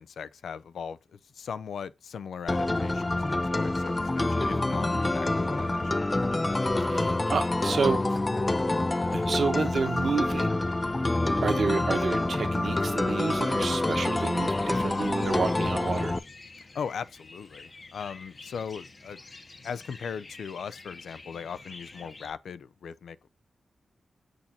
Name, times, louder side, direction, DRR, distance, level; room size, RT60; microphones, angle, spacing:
voice 1, 0.0-6.1 16.7-19.2 19.6-23.3, left 6 dB, 90° left, 0.5 m, -39 dB
sound 1, 2.5-16.2, left 2 dB, 20° left, 0.4 m, -27 dB
voice 2, 6.8-8.2 9.1-10.5 11.0-11.1 11.4-16.2, right 5 dB, 60° right, 1.2 m, -30 dB
sound 2, 13.6-22.3, left 3 dB, 35° left, 0.9 m, -48 dB
7.3 x 6.5 x 2.8 m
wide cardioid pair, 145°, 0 cm